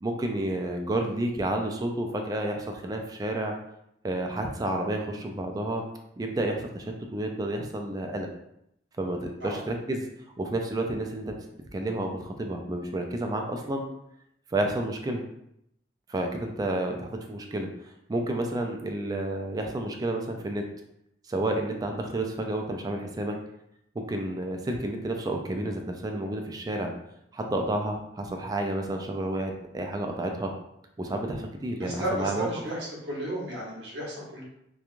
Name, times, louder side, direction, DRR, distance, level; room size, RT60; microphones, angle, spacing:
voice 1, 0.0-3.5 4.0-5.8 6.2-8.3 9.0-10.1 10.4-11.3 11.7-13.9 14.5-15.2 16.1-17.7 18.1-20.7 21.3-23.4 24.0-26.9 27.3-30.5 31.0-32.5, right 1 dB, 20° right, 3 dB, 0.3 m, -30 dB
voice 2, 31.8-32.8 33.0-34.4, right 1 dB, 90° right, -4 dB, 0.9 m, -33 dB
2.9 x 2.3 x 2.4 m, 0.78 s
head